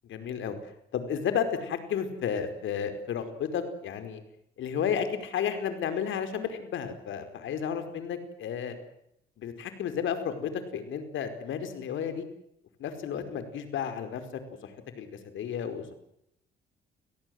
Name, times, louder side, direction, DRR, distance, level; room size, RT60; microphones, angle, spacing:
voice 1, 0.1-0.6 0.9-4.2 4.6-8.7 9.4-12.2 12.8-14.2 14.6-14.7 15.0-15.1 15.3-15.8, left 7 dB, 75° left, 9 dB, 5.0 m, -32 dB
29.5 x 19.0 x 7.9 m, 0.77 s
cardioid pair, 90°, 20 cm